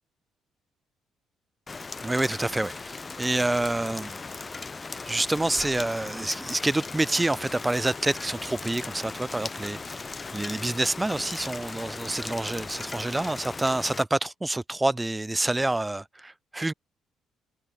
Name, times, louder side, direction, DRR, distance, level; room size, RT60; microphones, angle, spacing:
Rain, 1.7-14.0, left 4 dB, 30° left, 0.6 m, -38 dB
voice 1, 2.0-4.2 5.0-16.7, right 2 dB, 15° right, 0.4 m, -27 dB
figure-of-eight pair, 45°, 0 cm